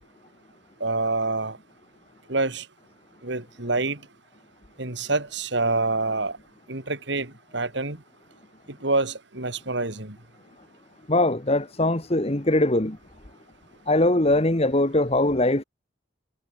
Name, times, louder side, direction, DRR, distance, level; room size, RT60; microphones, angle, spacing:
voice 1, 0.8-1.6 2.3-2.7 3.2-4.0 4.8-6.4 6.7-8.0 8.7-10.2, right 3 dB, 60° right, 2.6 m, -27 dB
voice 2, 11.1-13.0 13.9-15.6, left 1 dB, 30° left, 1.6 m, -21 dB
head